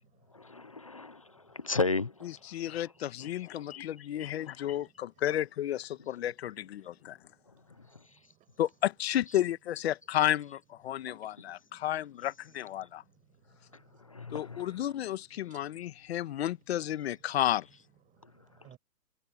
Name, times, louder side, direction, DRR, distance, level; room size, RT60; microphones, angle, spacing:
voice 1, 0.3-1.2 1.5-2.3 14.1-14.6, left 3 dB, 25° left, 0.4 m, -33 dB
voice 2, 2.2-7.2 8.6-13.0 14.3-17.7, left 12 dB, 40° left, 1.4 m, -32 dB
voice 3, 3.5-4.0 6.9-7.0 7.8-8.0 8.3-8.6 10.9-11.8 13.0-15.0 15.4-16.1 18.2-18.8, right 12 dB, 15° right, 5.6 m, -62 dB
hypercardioid pair, 155°, 48 cm